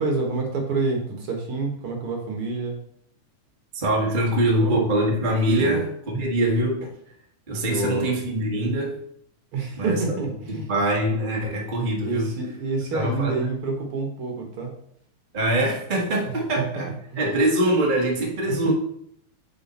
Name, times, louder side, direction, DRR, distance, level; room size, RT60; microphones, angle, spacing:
voice 1, 0.0-2.8 4.3-4.8 5.6-5.8 7.7-8.0 9.5-10.7 12.0-14.7 16.2-16.3 17.1-17.2 18.5-18.7, right 3 dB, 60° right, 1 dB, 1.7 m, -28 dB
voice 2, 3.7-6.9 7.5-9.0 9.8-10.0 10.5-12.3 12.9-13.5 15.3-16.9 17.2-18.7, right 1 dB, 40° right, -2 dB, 0.6 m, -23 dB
8.4 x 4.3 x 4.1 m, 0.71 s
omnidirectional pair, 3.4 m